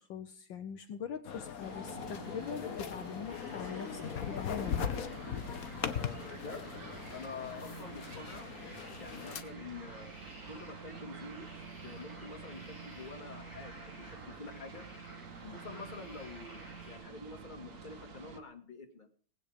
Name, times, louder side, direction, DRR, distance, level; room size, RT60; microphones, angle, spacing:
voice 1, 0.0-5.5 15.4-15.6, left 7 dB, 70° left, 8 dB, 1.6 m, -43 dB
sound 1, 1.2-9.4, left 8 dB, 50° left, 1.3 m, -40 dB
sound 2, 1.6-18.4, right 5 dB, 45° right, 1.6 m, -49 dB
sound 3, 3.3-17.0, right 1 dB, 60° right, 8.8 m, -53 dB
voice 2, 5.8-6.7 7.1-8.5 9.0-10.1 10.5-14.9 15.4-16.6 16.9-19.1, left 4 dB, 25° left, 3 dB, 2.1 m, -47 dB
19.5 x 9.0 x 5.0 m, 0.44 s
omnidirectional pair, 2.2 m